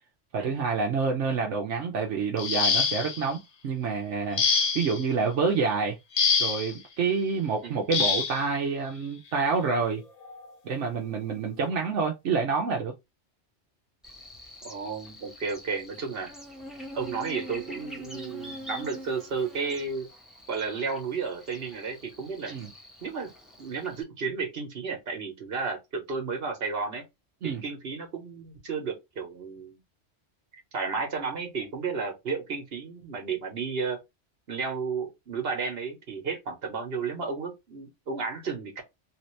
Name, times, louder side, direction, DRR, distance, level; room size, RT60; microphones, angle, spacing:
voice 1, 0.3-4.4 4.7-5.9 6.4-10.0 10.6-12.9 22.5-22.7 27.4-27.6, right 5 dB, 80° right, 1.1 m, -28 dB
sound 1, 2.4-3.3 4.4-5.0 6.2-6.7 7.9-8.4 9.6-9.7 10.2-10.5, left 5 dB, 50° left, 0.5 m, -25 dB
Buzz, 14.0-24.0, equal, ahead, 1.1 m, -44 dB
voice 2, 14.6-16.3 16.9-20.1 20.5-22.5 23.0-23.3 23.6-27.0 27.4-29.8 30.7-34.0 34.5-38.8, right 5 dB, 55° right, 1.4 m, -33 dB
3.4 x 2.8 x 3.1 m
omnidirectional pair, 1.2 m